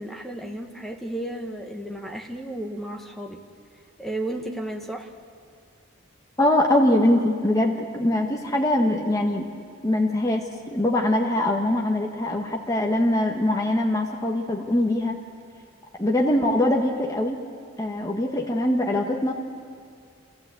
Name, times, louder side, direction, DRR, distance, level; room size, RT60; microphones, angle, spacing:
voice 1, 0.0-3.4 4.0-5.1, right 1 dB, ahead, 1 dB, 1.5 m, -33 dB
voice 2, 6.4-9.5 9.8-15.2 16.0-17.4 17.8-19.3, left 1 dB, 15° left, 0 dB, 1.4 m, -22 dB
28.0 x 14.5 x 8.4 m, 2.2 s
head